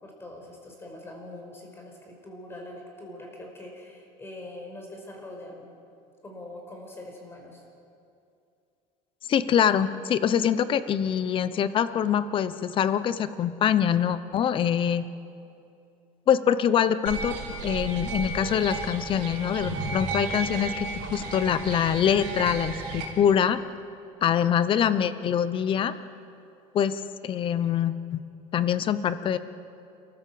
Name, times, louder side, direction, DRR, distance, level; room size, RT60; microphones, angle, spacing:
voice 1, 0.0-5.7 6.2-7.6, left 1 dB, 15° left, 1 dB, 5.2 m, -43 dB
voice 2, 9.3-15.1 16.3-17.4 17.6-23.6 24.2-25.9 26.7-28.2 28.5-29.4, left 8 dB, 35° left, 14 dB, 0.9 m, -24 dB
sound 1, 17.1-23.0, right 4 dB, 70° right, 4.1 m, -33 dB
29.5 x 14.0 x 7.7 m, 2.6 s
cardioid pair, 145°, 14 cm